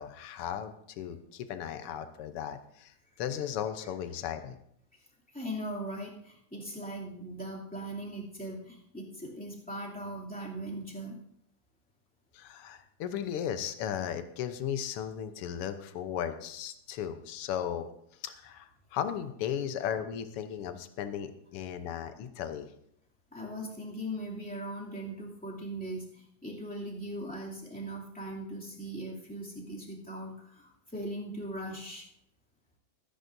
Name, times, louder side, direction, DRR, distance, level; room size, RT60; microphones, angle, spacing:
voice 1, 0.0-2.9 3.2-4.6 12.3-17.9 18.2-22.7, left 9 dB, 70° left, 9 dB, 1.4 m, -36 dB
voice 2, 5.3-11.2 23.3-32.1, right 1 dB, 5° left, -4 dB, 2.2 m, -39 dB
23.0 x 10.0 x 2.7 m, 0.72 s
omnidirectional pair, 3.5 m